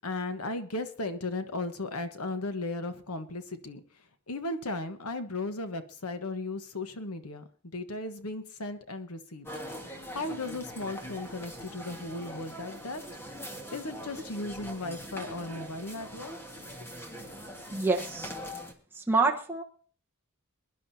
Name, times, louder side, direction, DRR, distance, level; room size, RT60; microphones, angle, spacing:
voice 1, 0.0-3.8 4.3-7.4 7.7-9.5 10.1-13.0 13.7-16.3, left 2 dB, 90° left, 9 dB, 1.3 m, -36 dB
sound 1, 9.4-18.7, equal, 10° left, 1.7 m, -42 dB
voice 2, 17.7-18.3 19.0-19.6, right 3 dB, 10° right, -1 dB, 1.1 m, -27 dB
22.0 x 11.0 x 2.8 m, 0.43 s
head